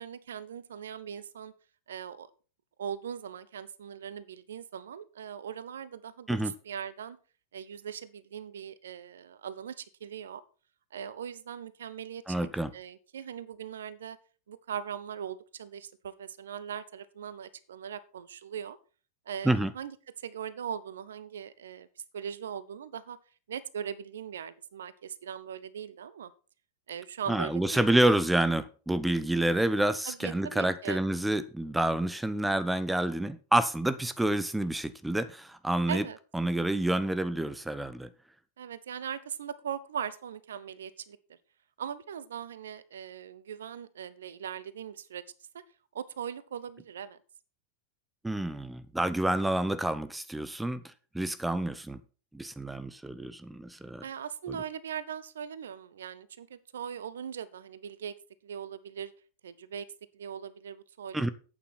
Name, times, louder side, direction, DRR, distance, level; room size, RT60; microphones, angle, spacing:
voice 1, 0.0-1.5 1.9-2.3 2.8-7.2 7.5-10.4 10.9-14.2 14.5-18.8 19.3-21.9 22.1-23.2 23.5-26.3 26.9-27.9 30.0-31.0 35.9-36.2 38.6-41.2 41.8-45.2 45.9-47.2 54.0-58.1 58.4-59.1 59.4-59.9 60.1-61.2, right 8 dB, 65° right, 0.9 m, -40 dB
voice 2, 12.3-12.7 19.4-19.7 27.3-36.0 36.3-38.1 48.2-50.8 51.1-52.0 52.3-54.0 54.5-54.6 61.1-61.3, right 1 dB, 5° right, 0.8 m, -28 dB
11.5 x 8.8 x 4.4 m
figure-of-eight pair, 90°, 0 cm